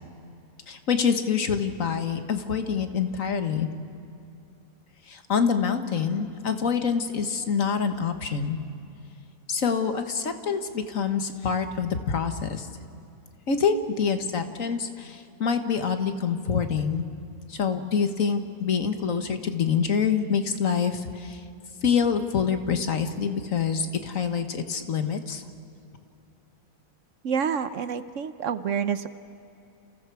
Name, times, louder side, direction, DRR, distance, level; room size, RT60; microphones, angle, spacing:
voice 1, 0.7-3.7 5.1-8.6 9.5-12.7 13.5-17.0 17.5-21.4 21.8-25.4, left 6 dB, 65° left, 8 dB, 1.7 m, -26 dB
voice 2, 27.2-29.1, right 7 dB, 60° right, 12 dB, 1.0 m, -28 dB
29.5 x 28.5 x 4.7 m, 2.6 s
omnidirectional pair, 1.5 m